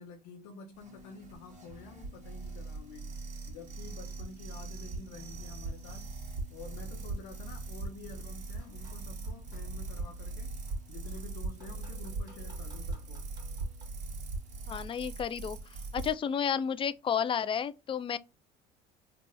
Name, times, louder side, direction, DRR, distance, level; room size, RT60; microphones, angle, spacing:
voice 1, 0.0-3.1 3.5-6.2 6.5-10.6 10.9-13.3, left 3 dB, 75° left, 0.8 m, -49 dB
sound 1, 0.7-16.1, right 3 dB, 40° right, 1.7 m, -40 dB
sound 2, 0.8-16.7, left 6 dB, 55° left, 1.4 m, -60 dB
sound 3, 8.5-10.2 10.7-13.9, left 1 dB, 20° right, 2.0 m, -61 dB
voice 2, 14.7-15.6 15.9-18.2, left 8 dB, 25° left, 0.4 m, -31 dB
3.3 x 2.5 x 3.3 m
supercardioid pair, 90°, 19 cm